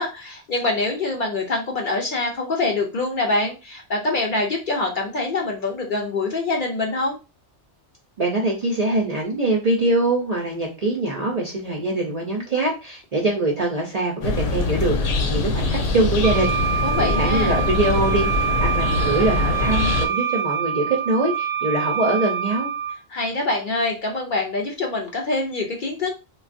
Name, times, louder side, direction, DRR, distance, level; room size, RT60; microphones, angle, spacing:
voice 1, 0.0-7.2 16.8-17.6 23.1-26.1, left 2 dB, 55° left, 1 dB, 0.6 m, -25 dB
voice 2, 8.2-22.7, right 2 dB, 50° right, -1 dB, 0.5 m, -23 dB
sound 1, 14.2-20.1, left 3 dB, 85° left, 1.0 m, -23 dB
Wind instrument woodwind instrument, 16.2-23.0, right 8 dB, 80° right, 0.9 m, -26 dB
3.3 x 2.3 x 2.5 m, 0.29 s
omnidirectional pair, 1.2 m